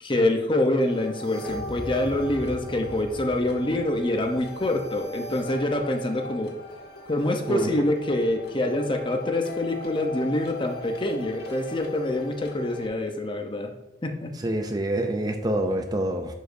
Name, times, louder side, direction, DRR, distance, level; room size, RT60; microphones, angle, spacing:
voice 1, 0.0-6.5 7.1-13.7 14.0-14.3, left 1 dB, 30° left, 4 dB, 0.8 m, -26 dB
sound 1, 0.7-12.9, left 2 dB, 60° left, 1.5 m, -39 dB
voice 2, 7.5-7.9 14.4-16.3, right 1 dB, 20° right, 6 dB, 0.5 m, -26 dB
11.0 x 5.0 x 2.6 m, 0.91 s
head